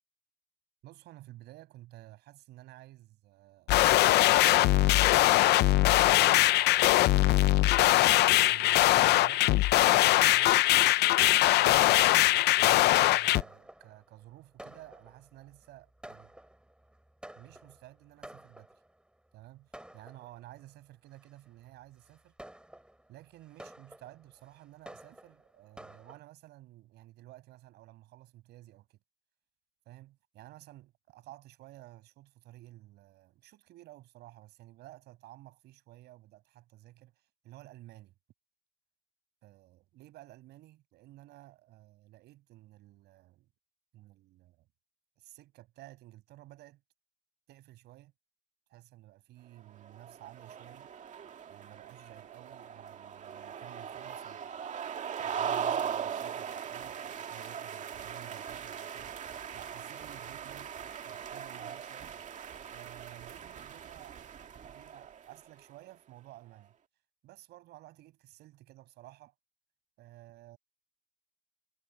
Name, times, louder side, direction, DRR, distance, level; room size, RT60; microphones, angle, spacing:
voice 1, 0.8-3.7 4.0-5.1 6.2-7.1 7.7-9.6 10.0-10.7 11.6-16.3 17.3-18.7 19.3-22.3 23.1-29.0 29.8-38.1 39.4-43.5 43.9-44.7 45.2-46.8 47.5-48.1 48.7-50.9 51.5-54.9 55.2-59.1 59.5-60.7 61.0-62.2 62.7-64.3 64.6-66.7 67.2-69.3 70.0-70.6, right 16 dB, 80° right, 6.7 m, -53 dB
sound 1, 3.7-13.4, left 16 dB, 80° left, 0.8 m, -22 dB
Fireworks, 13.0-19.1 19.7-20.6 21.2-21.5 22.0-26.2, right 1 dB, 5° right, 4.6 m, -51 dB
sound 2, 49.8-65.5, right 8 dB, 45° right, 2.1 m, -39 dB
cardioid pair, 110°, 17 cm